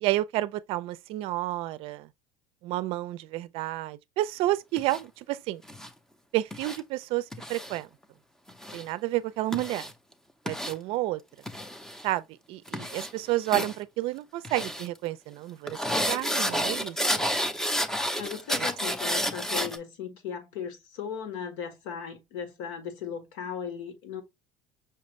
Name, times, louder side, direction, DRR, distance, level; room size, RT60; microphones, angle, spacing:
voice 1, 0.0-2.1 2.6-5.6 6.3-7.2 7.5-7.9 8.7-9.9 10.5-11.2 12.0-12.2 12.5-17.0 18.6-18.7, right 16 dB, 55° right, 0.4 m, -30 dB
sound 1, 4.8-5.0 5.7-5.9 6.5-6.8 7.3-7.8 8.5-8.8 9.5-9.9 10.5-10.7 11.5-12.0 12.7-13.1 13.4-13.7 14.4-14.9 15.7-19.8, equal, 5° left, 0.6 m, -30 dB
voice 2, 18.2-24.2, left 7 dB, 80° left, 1.7 m, -37 dB
5.7 x 2.6 x 3.1 m
cardioid pair, 145°, 11 cm